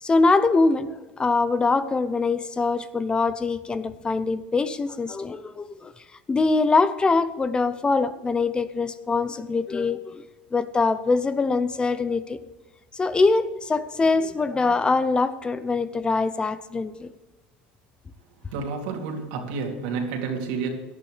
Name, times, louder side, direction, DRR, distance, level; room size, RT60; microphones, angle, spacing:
voice 1, 0.0-5.9 6.3-10.2 10.5-12.4 12.9-17.1, left 3 dB, 20° left, 0.7 m, -23 dB
voice 2, 18.5-20.7, right 5 dB, 75° right, 2.8 m, -30 dB
18.0 x 11.0 x 3.3 m
supercardioid pair, 100°, 5 cm